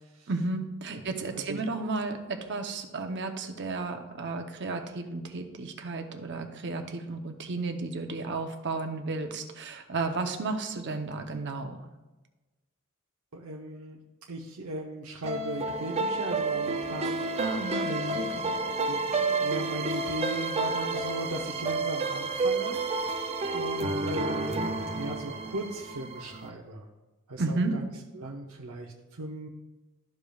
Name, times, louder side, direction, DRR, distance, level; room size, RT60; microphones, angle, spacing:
voice 1, 0.3-11.8 17.4-18.5 27.4-27.8, right 3 dB, 55° right, 5 dB, 0.8 m, -33 dB
voice 2, 13.3-14.0 14.3-18.2 18.9-19.0 19.4-24.6 24.9-26.9 27.3-27.9 28.1-29.5, right 1 dB, 85° right, -2 dB, 0.8 m, -38 dB
sound 1, 15.2-26.5, right 3 dB, 30° right, 0.4 m, -30 dB
13.0 x 5.1 x 2.4 m, 1.1 s
head